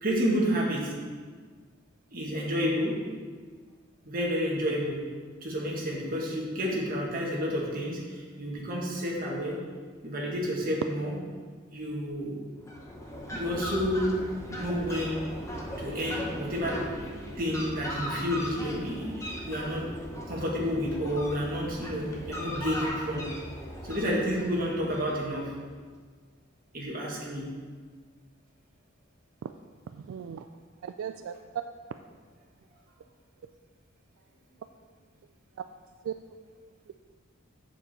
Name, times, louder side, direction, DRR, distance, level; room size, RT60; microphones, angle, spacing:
voice 1, 0.0-0.9 2.1-2.9 4.1-5.0 5.4-9.6 10.0-11.2 11.7-12.4 13.3-14.2 14.5-15.2 15.5-16.8 17.4-19.8 20.3-23.2 23.8-25.5 26.7-27.5, equal, 45° right, -4 dB, 1.7 m, -30 dB
Fowl, 12.6-25.6, equal, 15° left, 0.9 m, -38 dB
voice 2, 29.9-30.5 30.8-31.6 35.6-35.7 36.0-36.2 36.9-37.0, right 8 dB, 80° right, 8 dB, 0.3 m, -36 dB
7.1 x 6.9 x 4.3 m, 1.6 s
head